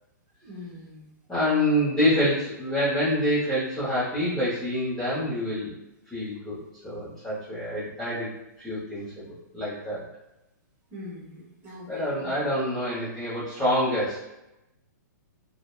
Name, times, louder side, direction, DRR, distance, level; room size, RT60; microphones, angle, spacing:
voice 1, 0.4-1.1 10.9-12.3, left 2 dB, 20° right, -7 dB, 1.0 m, -43 dB
voice 2, 1.3-5.7 6.1-6.6 6.8-8.3 8.6-9.3 9.5-10.0 11.9-14.2, equal, 5° left, -13 dB, 0.8 m, -26 dB
2.6 x 2.1 x 2.2 m, 0.91 s
hypercardioid pair, 150°, 10 cm